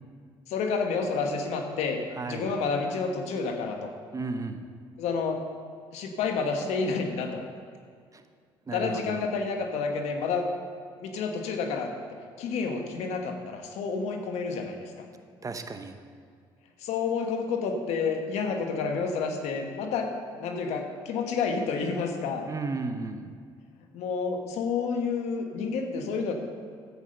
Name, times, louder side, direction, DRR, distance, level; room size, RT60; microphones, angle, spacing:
voice 1, 0.5-3.9 5.0-5.4 5.9-7.4 8.7-10.5 11.0-11.9 12.4-15.1 16.8-20.1 20.4-22.5 23.9-26.3, left 5 dB, 75° left, 4 dB, 1.4 m, -29 dB
voice 2, 2.1-2.5 4.1-4.6 8.1-8.2 8.7-9.3 15.4-16.0 22.5-23.3, right 3 dB, 30° right, 8 dB, 1.0 m, -34 dB
11.0 x 8.4 x 5.4 m, 2.1 s
supercardioid pair, 65°, 11 cm